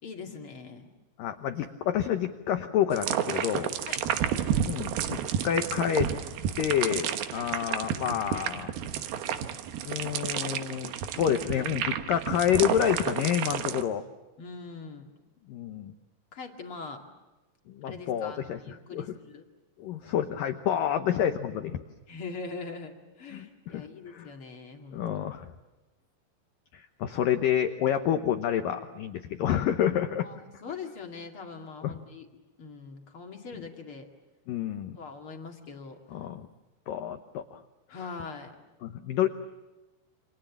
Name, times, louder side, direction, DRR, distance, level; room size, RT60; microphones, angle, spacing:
voice 1, 0.0-0.9 3.9-4.0 14.4-15.1 16.3-17.0 17.8-19.5 22.1-22.9 23.2-25.0 30.2-32.3 32.6-34.1 35.0-36.0 37.9-38.5, left 4 dB, 40° left, 3 dB, 2.2 m, -42 dB
voice 2, 1.2-3.7 4.6-6.1 6.6-8.7 9.8-14.0 15.5-15.9 17.7-19.2 19.8-21.8 23.3-24.3 24.9-25.5 26.7-30.3 31.8-32.0 33.5-33.6 34.5-35.0 36.1-36.5 36.9-37.6 37.9-38.1 38.8-39.3, left 10 dB, 80° left, 8 dB, 1.9 m, -29 dB
sound 1, 2.9-13.8, right 9 dB, 65° right, 2.7 m, -31 dB
29.0 x 27.0 x 7.2 m, 1.1 s
omnidirectional pair, 5.4 m